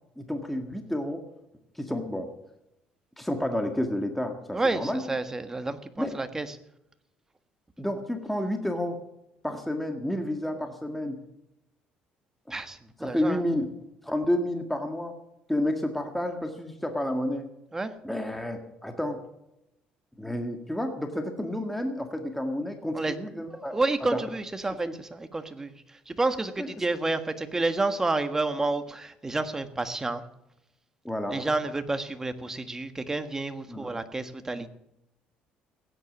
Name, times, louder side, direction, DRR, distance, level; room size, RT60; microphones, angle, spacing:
voice 1, 0.2-1.2 1.8-2.3 3.2-5.0 6.0-6.1 7.8-9.0 9.4-11.2 13.0-13.7 14.0-15.1 15.5-17.5 18.0-19.2 20.2-23.8 24.1-24.2 24.9-25.0 26.6-26.7 31.0-31.4 33.7-33.9, left 1 dB, 5° left, 5 dB, 1.7 m, -30 dB
voice 2, 4.5-6.5 12.5-13.4 17.7-17.9 22.9-23.1 23.7-25.7 26.1-30.2 31.3-34.7, right 2 dB, 15° right, 9 dB, 1.5 m, -29 dB
16.0 x 10.0 x 7.3 m, 0.85 s
cardioid pair, 110°, 3 cm